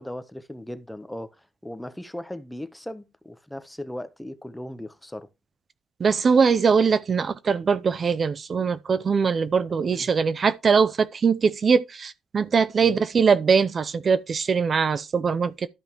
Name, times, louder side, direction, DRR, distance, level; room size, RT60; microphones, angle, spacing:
voice 1, 0.0-1.4 1.6-5.3 9.9-10.1 12.8-13.1, left 1 dB, 5° left, 0.8 m, -37 dB
voice 2, 6.0-15.7, right 5 dB, 45° right, 0.5 m, -22 dB
12.5 x 5.3 x 3.0 m
cardioid pair, 90°, 0 cm